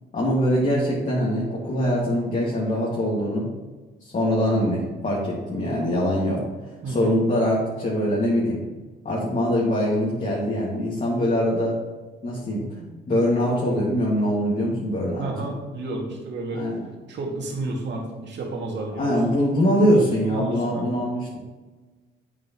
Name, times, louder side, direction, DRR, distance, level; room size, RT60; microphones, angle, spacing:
voice 1, 0.1-3.5 4.0-6.4 6.9-8.6 9.0-11.8 12.2-12.6 13.1-15.3 16.5-16.7 19.0-21.3, equal, 40° left, -6 dB, 2.2 m, -23 dB
voice 2, 6.8-7.2 12.8-12.9 15.2-16.7 17.1-19.1 20.2-20.9, right 2 dB, 65° right, -1 dB, 2.2 m, -31 dB
8.7 x 7.6 x 3.1 m, 1.3 s
cardioid pair, 90°, 20 cm